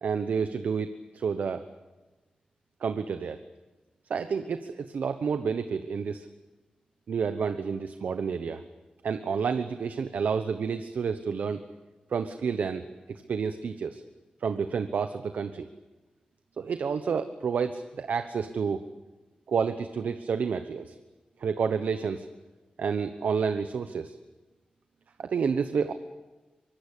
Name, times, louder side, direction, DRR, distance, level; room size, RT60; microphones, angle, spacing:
voice 1, 0.0-1.6 2.8-3.4 4.1-6.3 7.1-8.6 9.0-11.6 12.1-14.0 14.4-15.7 16.6-18.9 19.5-21.0 21.4-22.3 22.8-24.2 25.2-25.9, right 6 dB, 85° right, 9 dB, 1.0 m, -29 dB
24.5 x 21.0 x 8.4 m, 1.2 s
cardioid pair, 70°, 3 cm